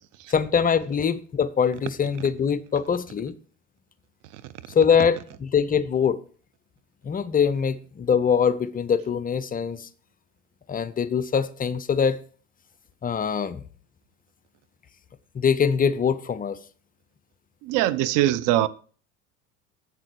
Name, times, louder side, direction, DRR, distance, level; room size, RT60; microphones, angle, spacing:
voice 1, 0.3-3.3 4.7-6.2 7.0-9.9 10.7-12.2 13.0-13.6 15.3-16.6, left 7 dB, 20° left, 0.6 m, -23 dB
voice 2, 17.6-18.7, right 14 dB, 50° right, 0.7 m, -21 dB
7.7 x 7.5 x 4.5 m
figure-of-eight pair, 70°, 40 cm